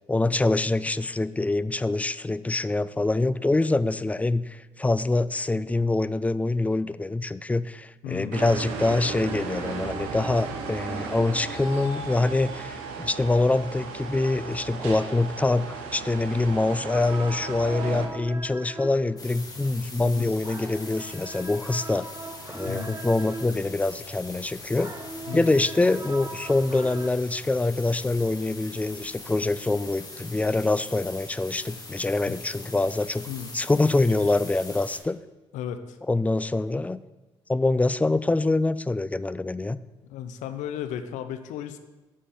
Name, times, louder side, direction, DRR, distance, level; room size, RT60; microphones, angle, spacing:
voice 1, 0.1-22.1 22.5-24.9 25.3-33.3 33.5-35.2 36.1-37.0 37.5-39.8, left 2 dB, 10° left, 16 dB, 0.3 m, -25 dB
voice 2, 8.0-8.4 20.0-20.3 22.6-23.0 25.3-25.6 32.3-32.4 33.3-33.5 35.5-36.0 40.0-41.8, left 9 dB, 70° left, 9 dB, 0.6 m, -35 dB
sound 1, 8.3-18.1, right 4 dB, 80° right, 0.8 m, -35 dB
sound 2, 16.9-24.0 24.3-27.1, right 3 dB, 25° right, 0.9 m, -40 dB
sound 3, 19.2-35.0, left 3 dB, 30° left, 1.8 m, -42 dB
8.8 x 4.4 x 4.9 m, 1.2 s
hypercardioid pair, 45°, 13 cm